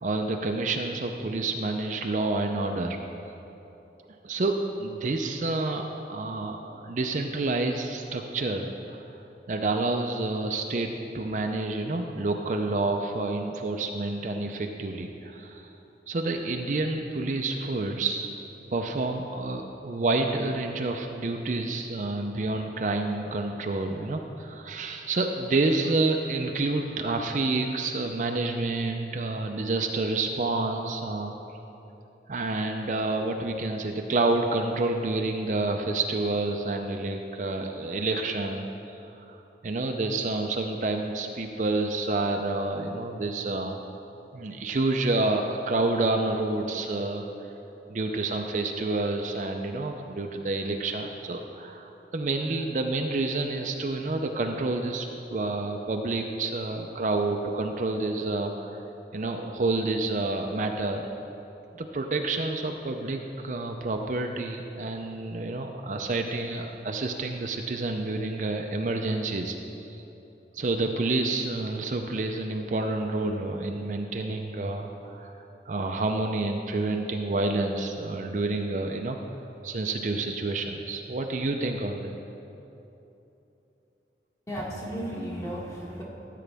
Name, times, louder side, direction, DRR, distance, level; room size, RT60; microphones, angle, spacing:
voice 1, 0.0-3.0 4.2-9.0 9.5-15.7 16.1-18.3 18.7-31.4 32.3-38.7 39.0-39.4 39.6-43.8 44.3-47.3 47.9-58.8 59.1-61.1 61.7-70.0 70.5-79.2 79.6-82.1, right 2 dB, 45° right, 3 dB, 0.5 m, -29 dB
voice 2, 84.5-86.0, equal, 15° left, -4 dB, 1.5 m, -34 dB
14.0 x 8.4 x 3.4 m, 3.0 s
head